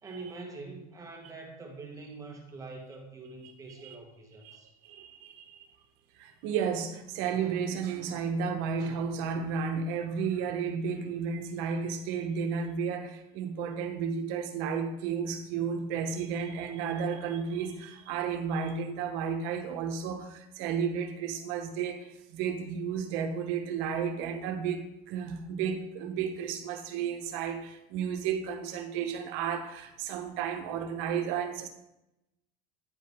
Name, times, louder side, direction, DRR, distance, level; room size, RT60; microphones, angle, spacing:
voice 1, 0.0-4.7, right 3 dB, 15° right, 2 dB, 1.3 m, -44 dB
voice 2, 4.4-5.6 6.2-31.7, right 6 dB, 70° right, 6 dB, 1.1 m, -33 dB
9.2 x 4.8 x 3.6 m, 0.87 s
cardioid pair, 145°, 19 cm